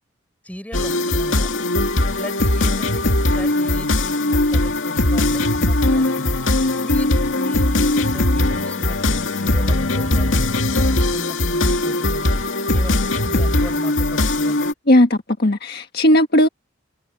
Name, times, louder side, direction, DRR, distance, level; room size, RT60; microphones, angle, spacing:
voice 1, 0.4-1.5 2.1-6.4 6.8-10.5 11.1-12.3 12.7-14.7, equal, 10° left, 7.6 m, -37 dB
sound 1, 0.7-14.7, left 2 dB, 85° left, 2.2 m, -19 dB
voice 2, 14.9-16.5, left 1 dB, 55° left, 1.6 m, -16 dB
head